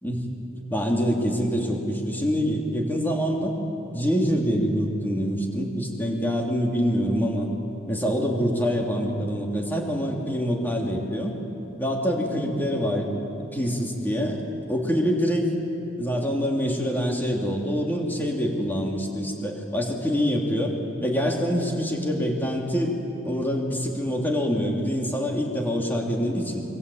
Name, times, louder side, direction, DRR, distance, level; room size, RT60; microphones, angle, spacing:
voice 1, 0.7-3.6 3.9-7.5 7.9-11.4 11.8-13.1 13.4-14.4 14.7-15.6 16.0-22.9 23.2-26.6, equal, 10° left, 0 dB, 3.2 m, -25 dB
26.5 x 22.5 x 8.7 m, 2.9 s
head